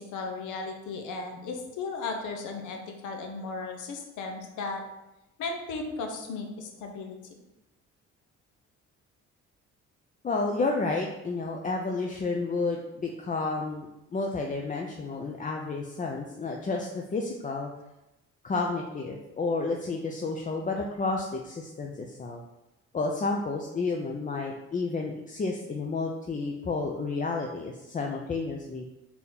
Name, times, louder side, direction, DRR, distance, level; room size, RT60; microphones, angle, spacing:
voice 1, 0.0-4.8 5.4-7.2, left 3 dB, 80° left, 3 dB, 0.8 m, -35 dB
voice 2, 10.2-17.7 18.4-22.4 22.9-28.8, left 3 dB, 25° left, 1 dB, 0.5 m, -31 dB
4.0 x 2.8 x 3.9 m, 0.95 s
supercardioid pair, 70°, 30 cm